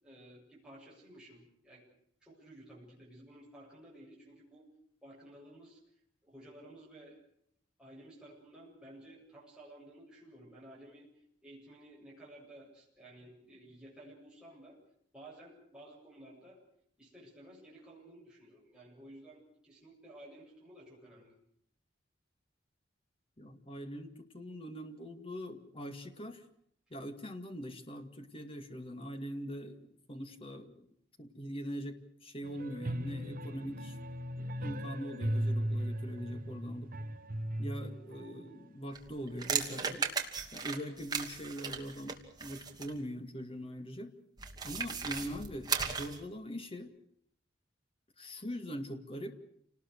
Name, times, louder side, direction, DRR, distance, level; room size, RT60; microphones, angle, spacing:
voice 1, 0.0-1.8 2.2-4.7 5.0-5.8 6.2-7.2 7.8-11.1 11.4-14.8 15.1-16.6 17.0-21.4, right 1 dB, 5° right, -6 dB, 7.6 m, -54 dB
voice 2, 23.4-26.4 26.9-30.9 31.2-34.0 34.4-36.9 37.6-40.1 40.5-44.1 44.6-46.9 48.2-49.3, equal, 30° left, 7 dB, 2.2 m, -42 dB
sound 1, 32.4-38.3, equal, 50° right, 1.3 m, -37 dB
sound 2, 38.9-43.0 44.4-46.2, right 5 dB, 20° right, 2.6 m, -36 dB
28.5 x 19.5 x 6.5 m, 0.69 s
head